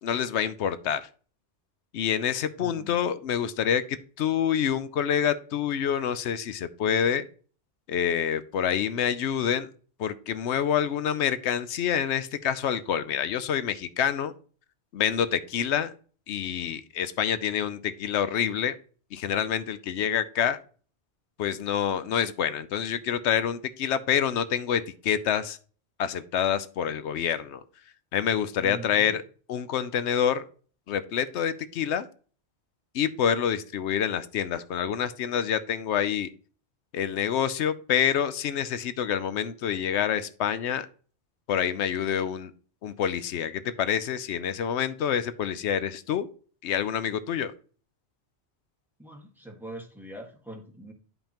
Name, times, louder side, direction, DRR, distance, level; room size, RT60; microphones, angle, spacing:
voice 1, 0.0-1.0 1.9-7.2 7.9-9.7 10.0-14.3 14.9-15.9 16.3-18.8 19.1-20.6 21.4-25.6 26.0-27.6 28.1-29.2 29.5-30.4 30.9-32.1 32.9-36.3 36.9-40.9 41.5-42.5 42.8-46.3 46.6-47.5, left 8 dB, 90° left, 13 dB, 0.9 m, -27 dB
voice 2, 2.6-3.1 28.6-29.2 49.0-50.9, right 1 dB, ahead, 1 dB, 1.6 m, -43 dB
11.0 x 5.3 x 2.9 m, 0.41 s
omnidirectional pair, 1.1 m